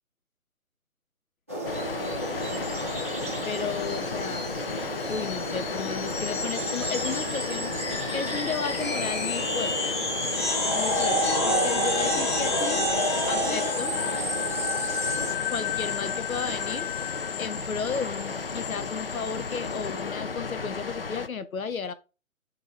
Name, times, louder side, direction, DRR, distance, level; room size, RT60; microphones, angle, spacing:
sound 1, 1.5-15.3, equal, 10° right, 0.6 m, -34 dB
Water, 1.6-21.3, left 4 dB, 45° left, 0.5 m, -35 dB
voice 1, 3.4-4.5 5.1-7.7 8.1-9.8 10.7-12.8 13.3-13.9 15.5-16.9 17.4-21.9, left 5 dB, 75° left, 0.9 m, -34 dB
sound 2, 3.8-20.0, left 2 dB, 20° left, 0.8 m, -30 dB
6.0 x 3.9 x 4.5 m
figure-of-eight pair, 150°, 42 cm